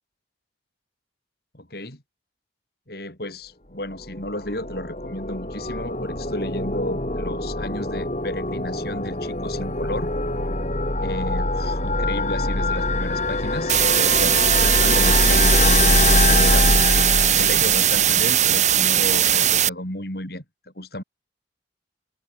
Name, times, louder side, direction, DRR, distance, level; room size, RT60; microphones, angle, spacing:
voice 1, 1.5-2.0 2.9-10.1 11.0-16.8 17.3-20.4 20.8-21.0, left 1 dB, 55° left, 6.3 m, -33 dB
sound 1, 4.0-18.2, left 2 dB, 40° left, 3.8 m, -23 dB
sound 2, 13.7-19.7, right 10 dB, 40° right, 3.3 m, -19 dB
open air
head